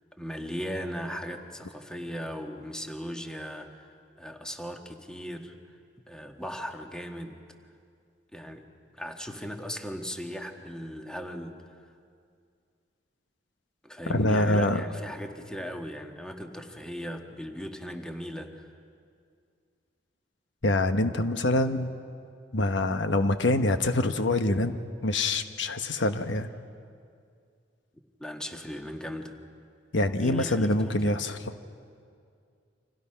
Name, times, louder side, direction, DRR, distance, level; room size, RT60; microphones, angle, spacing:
voice 1, 0.1-5.8 6.1-7.4 8.3-8.7 8.9-11.8 13.8-18.7 28.2-29.3 30.2-31.2, equal, 5° left, 4 dB, 1.5 m, -38 dB
voice 2, 14.1-14.8 20.6-21.9 22.5-26.5 29.9-31.5, left 2 dB, 90° left, 8 dB, 1.1 m, -25 dB
29.5 x 26.0 x 5.8 m, 2.3 s
head